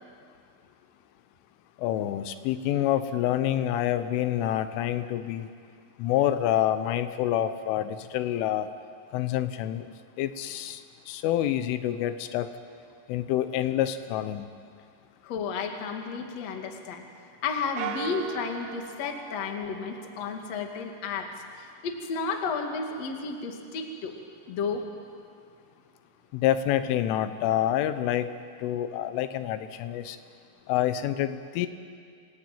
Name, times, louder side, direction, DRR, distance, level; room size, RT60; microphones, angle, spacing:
voice 1, 1.8-5.5 6.0-8.7 9.1-9.9 10.2-12.5 13.1-14.5 26.3-28.3 28.6-30.2 30.7-31.7, left 12 dB, 85° left, 11 dB, 3.4 m, -27 dB
voice 2, 15.2-17.0 17.4-21.3 21.6-24.1 24.5-24.8, left 5 dB, 45° left, 3 dB, 2.3 m, -32 dB
sound 1, 17.8-20.5, right 9 dB, 85° right, 3.6 m, -39 dB
27.5 x 18.5 x 9.1 m, 2.2 s
omnidirectional pair, 5.6 m